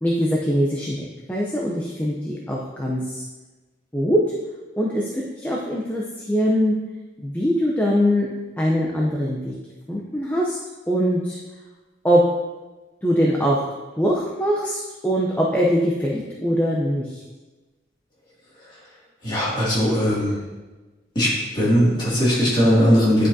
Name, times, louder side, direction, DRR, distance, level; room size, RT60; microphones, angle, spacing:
voice 1, 0.0-3.2 3.9-4.2 4.8-6.7 7.2-8.3 8.6-9.5 9.9-10.6 10.9-11.4 12.0-12.2 13.0-13.6 14.0-17.2, equal, 10° left, -4 dB, 0.6 m, -22 dB
voice 2, 19.2-20.4 21.2-21.3 21.5-23.3, equal, 25° left, -8 dB, 2.4 m, -19 dB
9.9 x 5.1 x 2.8 m, 1.2 s
head